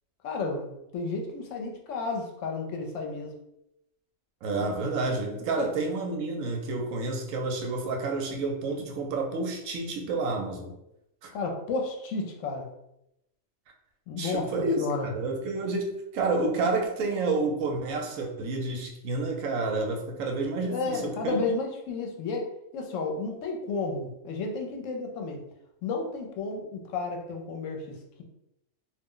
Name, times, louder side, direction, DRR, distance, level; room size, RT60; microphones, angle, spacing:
voice 1, 0.2-3.3 5.6-5.7 11.3-12.7 14.1-14.5 14.8-15.1 20.7-25.4 25.8-27.9, left 3 dB, 75° left, 2 dB, 0.9 m, -32 dB
voice 2, 4.4-10.8 11.2-11.3 14.2-21.3, right 3 dB, 85° right, 2 dB, 1.0 m, -29 dB
2.5 x 2.0 x 3.6 m, 0.84 s
omnidirectional pair, 1.4 m